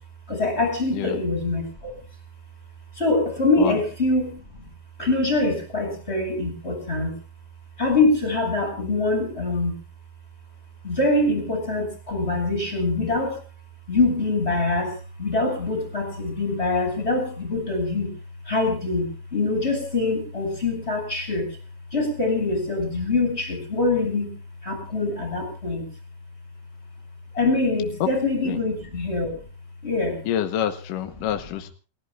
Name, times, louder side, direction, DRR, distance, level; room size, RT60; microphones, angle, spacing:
voice 1, 0.3-1.9 3.0-4.7 5.0-7.1 7.8-9.8 10.8-13.4 13.9-18.1 18.5-21.5 21.9-24.3 24.6-25.9 27.3-29.4 29.8-30.2 31.2-31.3, left 2 dB, 15° left, 4 dB, 7.3 m, -24 dB
voice 2, 30.3-31.7, left 10 dB, 70° left, 8 dB, 2.6 m, -27 dB
29.0 x 16.5 x 2.4 m, 0.37 s
omnidirectional pair, 4.2 m